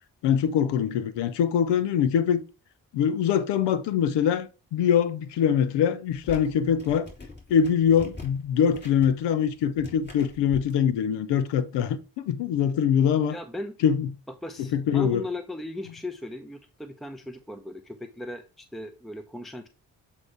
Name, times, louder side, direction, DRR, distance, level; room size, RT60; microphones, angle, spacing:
voice 1, 0.2-2.4 2.9-7.1 7.5-12.0 12.3-13.4 13.8-14.1 14.6-15.2, left 8 dB, 75° left, 0.7 m, -23 dB
sound 1, 6.1-10.7, left 3 dB, 25° left, 3.1 m, -44 dB
voice 2, 13.3-13.7 14.4-19.7, left 1 dB, ahead, 0.7 m, -37 dB
7.8 x 2.9 x 4.5 m
hypercardioid pair, 40°, 43 cm